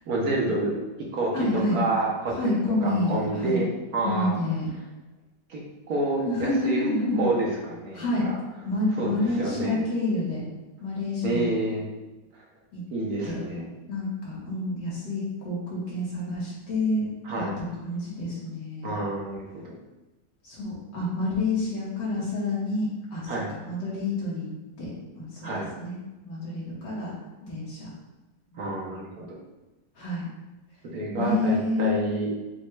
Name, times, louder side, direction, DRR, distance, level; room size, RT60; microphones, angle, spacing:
voice 1, 0.1-0.7 1.1-4.3 5.5-6.8 7.2-8.4 8.9-9.8 11.2-11.8 12.3-12.4 12.9-13.7 17.2-17.6 18.8-19.7 23.3-23.5 25.4-25.7 28.5-29.3 30.9-32.3, right 2 dB, 60° right, -3 dB, 1.3 m, -28 dB
voice 2, 1.3-1.8 2.4-3.6 4.0-4.7 6.3-7.3 7.9-8.3 8.7-10.4 10.8-11.5 12.7-12.8 13.2-13.4 13.9-17.1 17.6-18.9 20.4-23.3 23.6-24.5 24.8-24.9 25.2-25.5 25.8-26.0 26.2-27.1 27.4-27.9 30.0-30.3 31.2-32.0, left 2 dB, 80° left, -6 dB, 2.1 m, -28 dB
6.2 x 2.4 x 3.1 m, 1.1 s
omnidirectional pair, 1.9 m